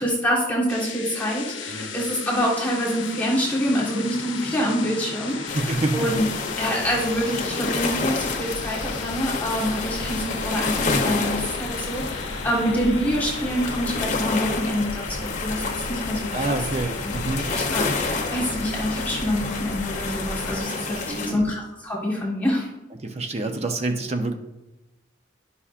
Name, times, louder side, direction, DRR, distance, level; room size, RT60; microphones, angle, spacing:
voice 1, 0.0-5.6 5.9-6.2 6.6-16.6 17.0-22.7, equal, 10° left, -4 dB, 1.5 m, -26 dB
sound 1, 0.7-20.6, left 3 dB, 90° left, 0.7 m, -34 dB
voice 2, 5.3-6.1 16.3-17.4 20.7-21.4 23.0-24.3, right 2 dB, 35° right, 5 dB, 0.6 m, -28 dB
sound 2, 5.5-21.3, left 4 dB, 40° left, 0.8 m, -30 dB
11.5 x 5.5 x 2.5 m, 1.0 s
head